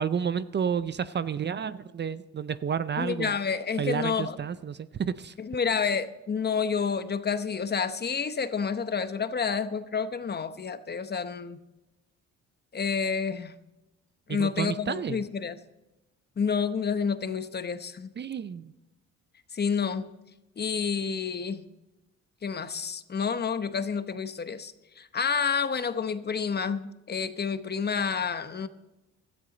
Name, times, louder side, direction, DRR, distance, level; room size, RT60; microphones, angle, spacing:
voice 1, 0.0-3.4 3.8-5.3 14.3-15.2 18.2-18.7, right 7 dB, 35° right, 15 dB, 0.5 m, -31 dB
voice 2, 3.0-4.4 5.4-11.6 12.7-13.5 14.3-15.6 16.4-18.1 19.5-20.1 20.6-21.7 22.4-28.7, left 6 dB, 35° left, 12 dB, 0.9 m, -29 dB
17.0 x 13.0 x 3.9 m, 1.0 s
cardioid pair, 90°, 30 cm